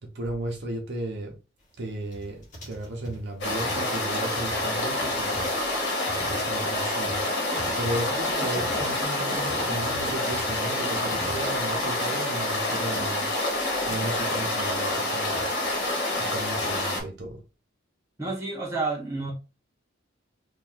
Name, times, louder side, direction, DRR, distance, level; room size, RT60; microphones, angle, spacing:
voice 1, 0.0-1.4 1.8-5.5 6.2-7.3 7.8-13.3 13.9-15.5 16.2-17.4, right 1 dB, 65° right, 0.8 m, -35 dB
sound 1, 2.1-11.9 12.2-12.3 12.5-13.1 13.4-16.8, right 1 dB, 40° left, 1.4 m, -44 dB
sound 2, 3.4-17.0, left 1 dB, 65° left, 1.3 m, -27 dB
voice 2, 18.2-19.3, right 3 dB, 15° right, 1.3 m, -30 dB
3.0 x 2.5 x 4.0 m
head